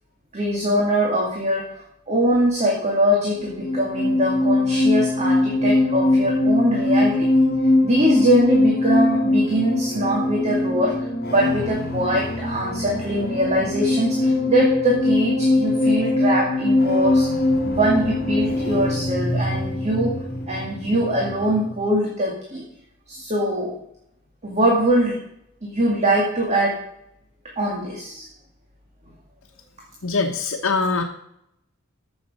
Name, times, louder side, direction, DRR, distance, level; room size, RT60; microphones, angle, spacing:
voice 1, 0.3-7.3 7.8-17.3 17.7-20.2 20.5-22.7 23.1-23.8 24.4-25.2 25.6-26.8 27.6-28.3, right 1 dB, 30° right, -2 dB, 2.1 m, -22 dB
sound 1, 3.4-21.8, left 2 dB, 45° left, 2.3 m, -22 dB
voice 2, 30.0-31.0, left 4 dB, 80° left, 2 dB, 1.0 m, -22 dB
14.5 x 6.4 x 5.4 m, 0.77 s
head